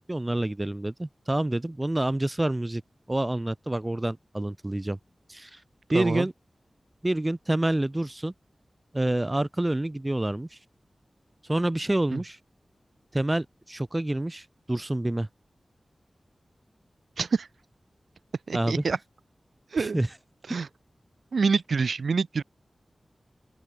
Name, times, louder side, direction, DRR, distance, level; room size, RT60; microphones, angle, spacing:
voice 1, 0.0-2.8 3.1-5.0 5.3-5.6 5.9-6.3 7.0-8.3 8.9-10.6 11.5-12.4 13.1-15.3 18.5-18.8 19.8-20.1, right 1 dB, 25° right, 0.5 m, -27 dB
voice 2, 5.9-6.3 12.1-12.2 17.2-17.5 18.5-19.0 19.7-20.0 20.5-20.7 21.3-22.4, right 5 dB, 85° right, 0.8 m, -26 dB
open air
cardioid pair, 45°, 0 cm